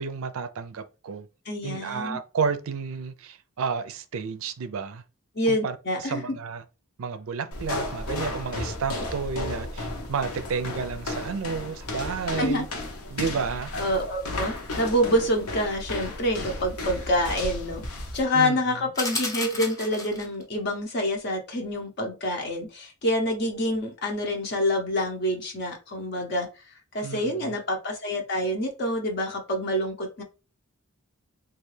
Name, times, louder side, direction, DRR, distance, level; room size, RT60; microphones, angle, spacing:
voice 1, 0.0-1.3 1.6-5.0 5.5-6.6 7.0-12.7 13.1-13.7 18.3-18.6 27.0-27.6, right 5 dB, 65° right, 0.4 m, -31 dB
voice 2, 1.5-2.2 5.4-6.2 12.4-12.7 13.7-30.2, equal, 50° left, 0.7 m, -27 dB
sound 1, 7.5-18.3, left 2 dB, 85° left, 0.8 m, -34 dB
sound 2, 18.9-20.4, left 2 dB, 15° left, 0.7 m, -32 dB
3.4 x 2.4 x 3.2 m
head